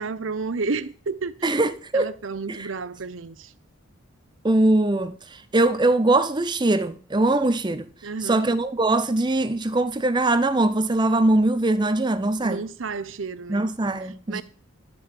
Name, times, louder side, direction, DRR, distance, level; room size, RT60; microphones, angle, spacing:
voice 1, 0.0-1.5 1.9-3.5 8.0-8.5 12.4-13.7 14.3-14.4, right 4 dB, 70° right, 0.7 m, -31 dB
voice 2, 1.4-2.1 2.5-2.7 4.4-7.9 8.2-12.6 13.5-14.4, right 2 dB, 20° right, 0.6 m, -22 dB
11.5 x 5.3 x 7.5 m
head